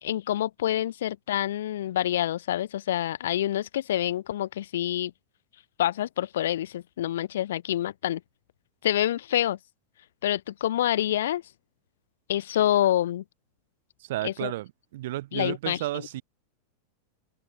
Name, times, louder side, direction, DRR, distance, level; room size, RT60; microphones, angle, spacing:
voice 1, 0.0-5.1 5.8-8.2 8.8-9.6 10.2-11.4 12.3-13.2 14.2-14.5 15.3-16.1, left 12 dB, 90° left, 1.9 m, -27 dB
voice 2, 14.1-14.7 14.9-16.2, right 16 dB, 60° right, 3.2 m, -32 dB
supercardioid pair, 170°, 0 cm